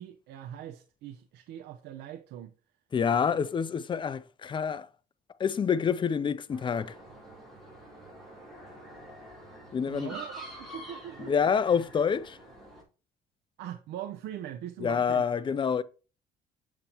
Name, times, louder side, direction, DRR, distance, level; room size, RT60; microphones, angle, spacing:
voice 1, 0.0-2.5 9.8-11.5 13.6-15.3, right 11 dB, 80° right, 0.7 m, -41 dB
voice 2, 2.9-4.9 5.4-7.0 9.7-10.1 11.3-12.4 14.8-15.8, left 6 dB, 30° left, 0.5 m, -27 dB
sound 1, 6.5-12.8, right 1 dB, ahead, 4.3 m, -47 dB
7.3 x 6.7 x 3.0 m
cardioid pair, 110°, 17 cm